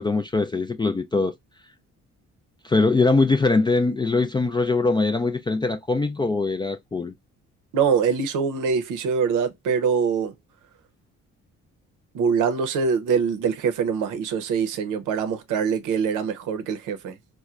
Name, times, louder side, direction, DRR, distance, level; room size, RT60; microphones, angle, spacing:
voice 1, 0.0-1.3 2.6-7.1, left 3 dB, 15° left, 0.3 m, -22 dB
voice 2, 7.7-10.3 12.1-17.2, right 6 dB, 85° right, 0.7 m, -24 dB
4.3 x 2.1 x 2.3 m
cardioid pair, 90°, 30 cm